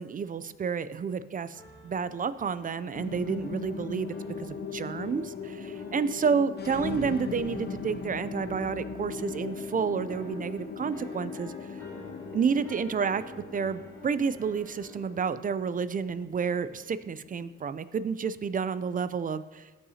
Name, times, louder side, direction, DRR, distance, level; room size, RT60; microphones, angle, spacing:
voice 1, 0.0-11.5 12.3-13.2 13.5-19.7, right 6 dB, 30° right, 14 dB, 0.3 m, -30 dB
sound 1, 1.5-15.3, left 1 dB, 10° left, 2.2 m, -50 dB
sound 2, 2.9-17.5, left 5 dB, 35° left, 0.7 m, -39 dB
14.0 x 5.6 x 2.8 m, 1.2 s
cardioid pair, 90°, 30 cm